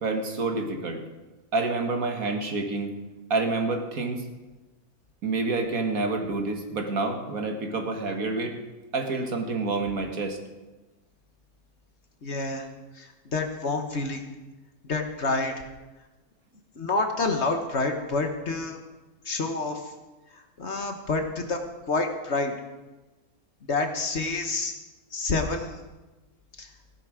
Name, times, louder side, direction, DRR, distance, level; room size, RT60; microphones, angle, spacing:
voice 1, 0.0-1.0 1.5-2.9 3.3-4.2 5.2-8.6 8.9-10.4, right 3 dB, 70° right, 4 dB, 2.0 m, -28 dB
voice 2, 12.2-12.7 12.9-14.3 14.9-15.6 16.8-18.8 19.2-19.9 20.3-21.6 21.9-22.5 23.7-24.7 25.1-25.8 26.6-26.7, left 3 dB, 50° left, 5 dB, 1.5 m, -28 dB
16.0 x 11.0 x 5.0 m, 1.2 s
omnidirectional pair, 1.6 m